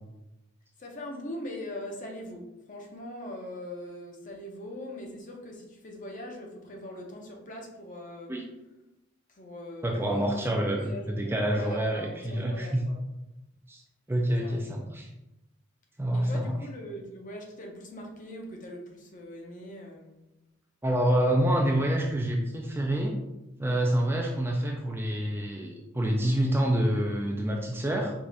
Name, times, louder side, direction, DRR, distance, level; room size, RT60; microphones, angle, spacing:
voice 1, 0.8-8.3 9.3-13.0 14.4-14.5 16.1-20.1, left 1 dB, 40° left, 1 dB, 0.8 m, -41 dB
voice 2, 9.8-12.8 13.7-13.8 14.1-15.1 16.0-16.5 20.8-23.2 23.6-28.1, right 1 dB, 10° right, 0 dB, 0.4 m, -27 dB
4.8 x 2.4 x 4.1 m, 0.96 s
head